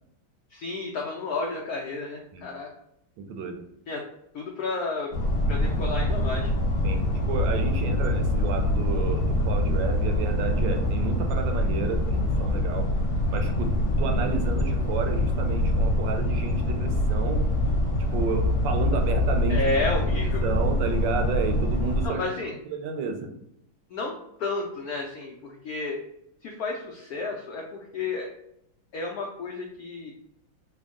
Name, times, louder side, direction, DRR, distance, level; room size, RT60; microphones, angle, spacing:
voice 1, 0.5-2.7 3.9-4.0 4.3-5.1 5.5-6.5 19.5-20.4 22.0-22.5 23.9-24.1 24.4-26.0 26.4-28.3 28.9-30.1, left 3 dB, 90° left, -1 dB, 0.8 m, -31 dB
voice 2, 3.2-3.6 6.8-7.0 7.3-12.9 13.3-13.7 14.0-17.4 18.1-19.7 20.2-22.3 22.7-23.3, right 5 dB, 75° right, 4 dB, 1.2 m, -31 dB
sound 1, 5.1-22.1, left 1 dB, 55° left, 1.2 m, -25 dB
3.5 x 2.2 x 3.5 m, 0.77 s
omnidirectional pair, 2.2 m